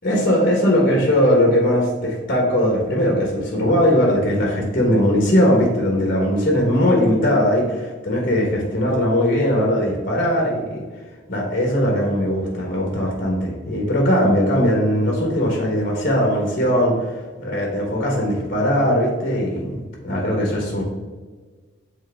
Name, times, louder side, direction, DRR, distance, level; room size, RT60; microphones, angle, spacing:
voice 1, 0.0-10.8 11.3-17.0 17.4-20.8, equal, 50° left, 0 dB, 1.4 m, -19 dB
7.5 x 4.0 x 3.6 m, 1.4 s
head